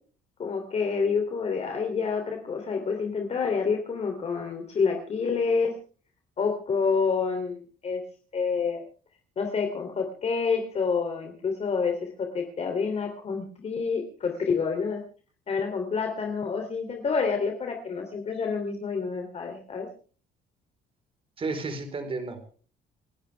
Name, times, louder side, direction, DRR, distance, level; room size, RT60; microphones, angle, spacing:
voice 1, 0.4-5.7 6.4-8.0 8.3-8.8 9.4-15.0 15.5-19.9, left 5 dB, 40° left, 4 dB, 3.1 m, -28 dB
voice 2, 21.4-22.5, right 3 dB, 35° right, 6 dB, 4.2 m, -32 dB
28.5 x 11.5 x 3.5 m, 0.41 s
cardioid pair, 110°, 17 cm